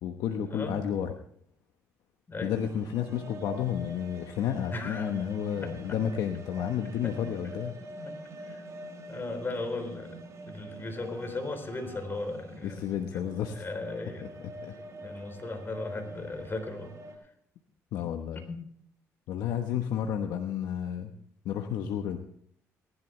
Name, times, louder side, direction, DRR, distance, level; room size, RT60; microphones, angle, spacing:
voice 1, 0.0-1.2 2.4-7.7 12.6-13.6 14.6-14.7 17.9-18.5 19.3-21.1 21.4-22.2, left 9 dB, 80° left, 5 dB, 1.1 m, -31 dB
sound 1, 2.5-17.2, right 2 dB, 50° right, 4.4 m, -45 dB
voice 2, 4.7-5.1 5.6-6.0 7.0-7.6 8.0-8.1 8.5-8.6 9.1-12.8 13.1-13.3 13.5-14.2 15.0-16.9 18.5-18.6, left 2 dB, 35° left, 6 dB, 3.8 m, -37 dB
19.5 x 11.5 x 3.3 m, 0.64 s
supercardioid pair, 70°, 7 cm